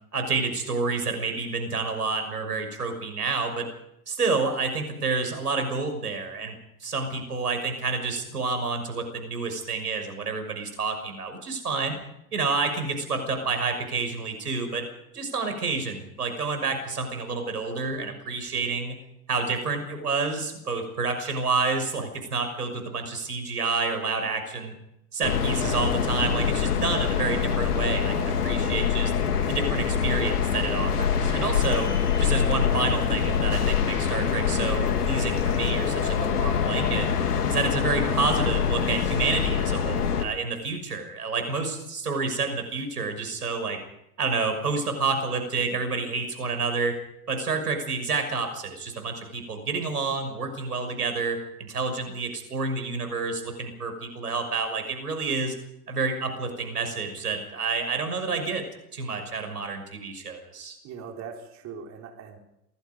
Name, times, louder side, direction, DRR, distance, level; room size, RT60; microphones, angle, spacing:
voice 1, 0.1-3.7 4.1-6.5 6.8-12.0 12.3-14.8 15.1-19.0 19.3-24.7 25.1-29.1 29.5-31.9 32.2-37.1 37.5-43.8 44.2-46.9 47.3-55.5 55.9-58.6 58.9-60.8, right 4 dB, 90° right, 7 dB, 6.2 m, -29 dB
sound 1, 25.2-40.2, left 7 dB, 80° left, 2.7 m, -25 dB
voice 2, 60.8-62.4, right 6 dB, 35° right, 2 dB, 4.5 m, -40 dB
27.5 x 19.5 x 5.3 m, 0.80 s
hypercardioid pair, 100°, 45 cm